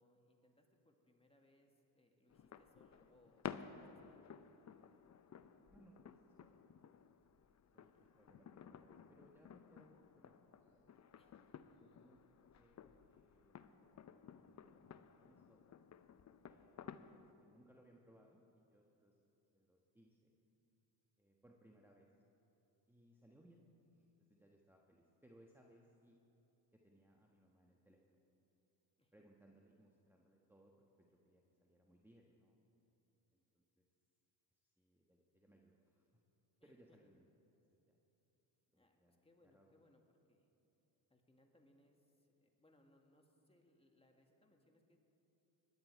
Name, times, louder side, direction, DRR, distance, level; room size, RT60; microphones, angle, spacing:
voice 1, 0.0-4.4 8.2-8.3 11.1-11.5 29.0-29.1 36.6-37.0 38.7-40.0 40.3-40.5 41.1-45.0, left 1 dB, 10° left, 2 dB, 2.0 m, -72 dB
sound 1, 2.3-17.3, left 8 dB, 35° left, 0.7 m, -55 dB
voice 2, 5.7-6.5 7.7-10.9 11.8-15.8 16.4-19.2 19.5-20.3 21.2-22.1 22.9-23.6 23.9-26.2 26.7-28.2 29.1-32.6 33.3-33.8 34.5-36.2 36.6-37.2 37.7-38.0 38.7-39.7, right 1 dB, 5° right, 0 dB, 1.3 m, -68 dB
19.0 x 11.0 x 4.6 m, 3.0 s
supercardioid pair, 65°, 48 cm